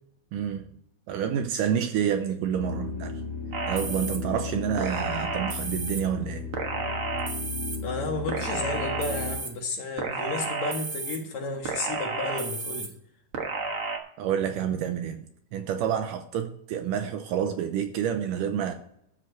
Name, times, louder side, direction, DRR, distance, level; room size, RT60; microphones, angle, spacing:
voice 1, 0.3-0.7 1.1-3.2 3.7-6.5 14.2-15.3 15.5-18.7, right 8 dB, 75° right, 2.1 m, -28 dB
sound 1, 2.5-9.4, left 4 dB, 80° left, 4.2 m, -35 dB
sound 2, 3.5-4.2 4.8-6.0 6.5-7.8 8.3-9.5 10.0-11.2 11.6-12.9 13.3-14.0, right 4 dB, 50° right, 1.7 m, -32 dB
voice 2, 7.8-12.9, left 2 dB, 55° left, 2.6 m, -32 dB
13.0 x 4.8 x 7.9 m
omnidirectional pair, 4.3 m